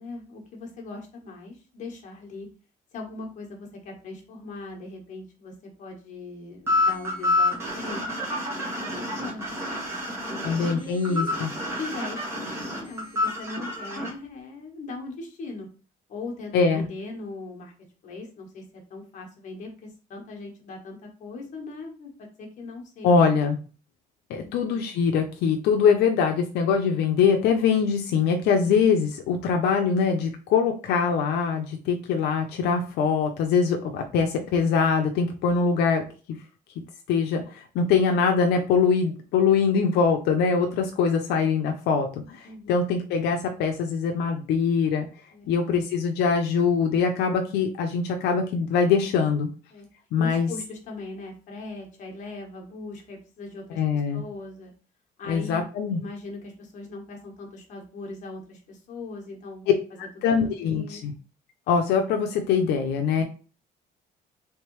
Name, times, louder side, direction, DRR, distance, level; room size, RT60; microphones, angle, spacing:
voice 1, 0.0-2.5 2.9-8.1 8.5-9.6 10.2-11.3 11.8-15.7 16.1-17.7 18.0-23.1 24.4-24.6 42.4-42.7 45.3-45.6 49.7-49.9 50.2-54.7 55.2-55.6 56.0-59.6 60.4-61.0, left 3 dB, 45° left, 1 dB, 1.1 m, -40 dB
sound 1, 6.7-14.1, left 2 dB, 15° right, 1.4 m, -28 dB
voice 2, 10.4-11.5 16.5-16.9 23.0-23.6 24.3-36.4 37.1-45.1 45.5-49.5 50.1-50.5 53.8-54.2 55.3-56.0 60.2-61.1 61.7-63.2, left 5 dB, 85° left, 3 dB, 0.5 m, -23 dB
3.5 x 3.3 x 3.0 m, 0.37 s
cardioid pair, 165°, 17 cm